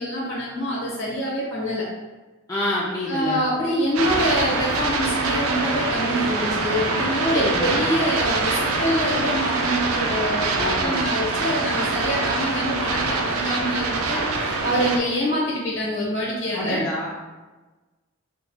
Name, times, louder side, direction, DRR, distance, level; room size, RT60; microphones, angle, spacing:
voice 1, 0.0-1.9 3.1-16.8, equal, 60° left, -4 dB, 1.1 m, -25 dB
voice 2, 2.5-3.4 7.3-7.8 10.6-11.1 16.5-17.1, left 1 dB, 15° left, -8 dB, 0.5 m, -27 dB
sound 1, 3.9-15.0, right 3 dB, 85° right, 0.4 m, -24 dB
5.2 x 2.4 x 2.3 m, 1.2 s
head